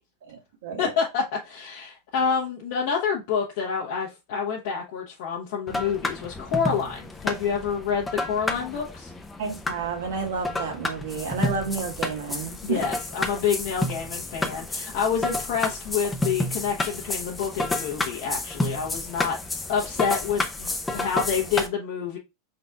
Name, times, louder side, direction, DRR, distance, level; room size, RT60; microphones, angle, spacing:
voice 1, 0.2-0.9 9.4-12.8, right 5 dB, 80° right, 1.6 m, -31 dB
voice 2, 0.8-9.1 12.6-19.4 19.7-22.2, left 6 dB, 70° left, 1.1 m, -28 dB
sound 1, 5.7-21.7, left 2 dB, 10° left, 0.6 m, -31 dB
5.0 x 3.9 x 2.3 m
supercardioid pair, 150°, 0 cm